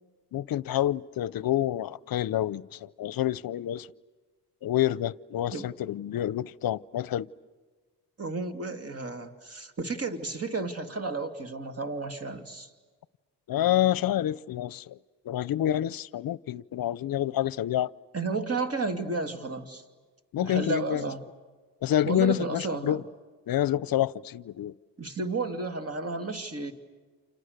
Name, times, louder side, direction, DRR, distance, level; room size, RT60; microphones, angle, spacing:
voice 1, 0.3-3.9 4.6-7.3 13.5-15.0 15.2-17.9 20.3-21.0 21.8-23.0 23.5-24.7, left 12 dB, 60° left, 0.7 m, -28 dB
voice 2, 8.2-12.7 18.1-19.8 20.4-21.2 22.0-23.0 25.0-26.7, right 3 dB, 35° right, 2.8 m, -32 dB
30.0 x 27.5 x 6.7 m
cardioid pair, 75°, 40 cm